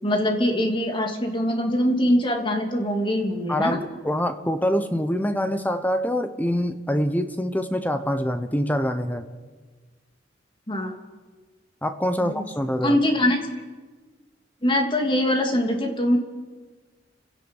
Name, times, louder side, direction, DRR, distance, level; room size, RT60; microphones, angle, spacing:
voice 1, 0.0-3.8 10.7-10.9 12.2-12.4 12.8-13.4 14.6-16.2, left 1 dB, 30° left, 2 dB, 2.8 m, -23 dB
voice 2, 3.5-9.3 11.8-13.0, equal, 10° left, 9 dB, 1.0 m, -25 dB
29.5 x 17.0 x 5.6 m, 1.4 s
head